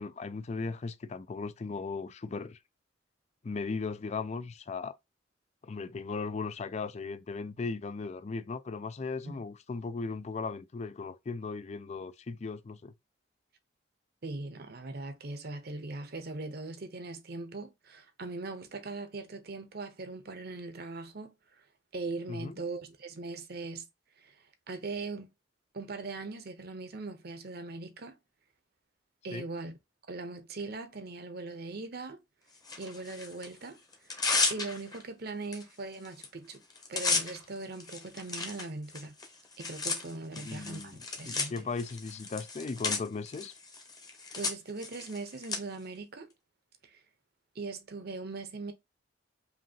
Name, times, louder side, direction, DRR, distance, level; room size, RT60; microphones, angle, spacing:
voice 1, 0.0-2.6 3.4-5.0 5.6-12.9 22.3-22.5 29.3-29.5 40.4-43.5, left 4 dB, 35° left, 0.4 m, -37 dB
voice 2, 14.2-21.3 21.9-23.9 24.2-24.4 24.7-25.3 25.7-28.2 29.2-29.8 30.1-32.2 32.8-33.8 34.5-36.6 36.9-39.2 39.6-41.6 44.4-46.3 46.8-47.0 47.5-48.7, right 3 dB, 55° right, 0.8 m, -40 dB
Tearing, 32.6-33.5 33.9-35.0 35.5-35.6 35.9-36.3 36.5-45.6, left 4 dB, 20° left, 0.9 m, -34 dB
5.1 x 2.7 x 2.8 m
head